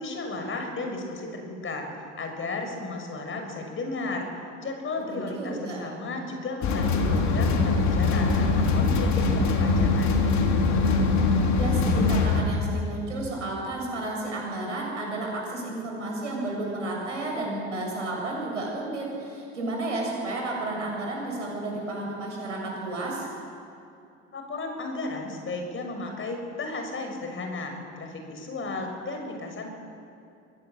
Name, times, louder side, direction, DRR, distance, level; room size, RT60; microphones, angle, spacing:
voice 1, 0.0-1.9 2.2-4.3 4.6-10.2 24.3-29.7, left 3 dB, 35° left, 4 dB, 6.3 m, -34 dB
voice 2, 5.1-5.8 11.5-23.3, right 2 dB, 90° right, -1 dB, 7.4 m, -32 dB
sound 1, 6.6-12.4, left 3 dB, 50° left, 3.8 m, -22 dB
24.5 x 18.0 x 7.6 m, 2.6 s
hypercardioid pair, 70°, 36 cm